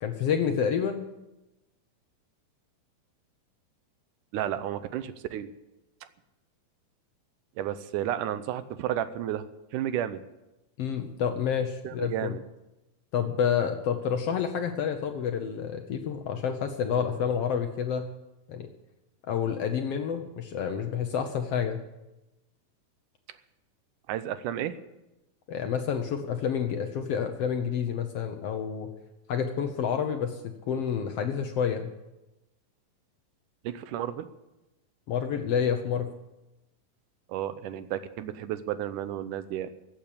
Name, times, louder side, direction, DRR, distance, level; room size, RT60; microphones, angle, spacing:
voice 1, 0.0-1.1 10.8-12.3 13.1-18.1 18.5-18.7 19.3-21.8 25.5-28.9 29.3-31.9 35.1-36.1, left 7 dB, 75° left, 6 dB, 1.4 m, -29 dB
voice 2, 4.3-5.5 7.6-9.5 9.7-10.2 11.8-12.4 24.1-24.8 33.6-34.3 37.3-39.7, right 11 dB, 75° right, 13 dB, 2.0 m, -32 dB
15.0 x 8.9 x 8.5 m, 0.97 s
omnidirectional pair, 4.0 m